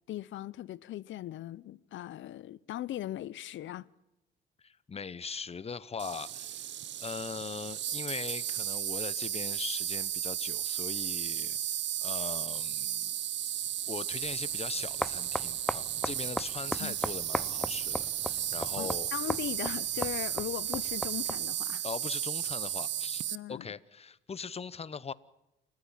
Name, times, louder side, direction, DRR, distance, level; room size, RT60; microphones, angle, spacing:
voice 1, 0.1-3.9 16.8-17.0 18.8-21.8 23.3-23.7, left 13 dB, 70° left, 0.8 m, -39 dB
voice 2, 4.6-6.7 7.0-11.6 12.0-13.1 13.9-19.1 21.8-23.2 23.5-25.1, left 5 dB, 30° left, 0.9 m, -40 dB
Insect, 6.0-23.4, right 11 dB, 65° right, 0.8 m, -34 dB
sound 1, 14.2-21.6, left 1 dB, 5° left, 0.8 m, -38 dB
29.0 x 14.5 x 7.4 m
cardioid pair, 90°, 20 cm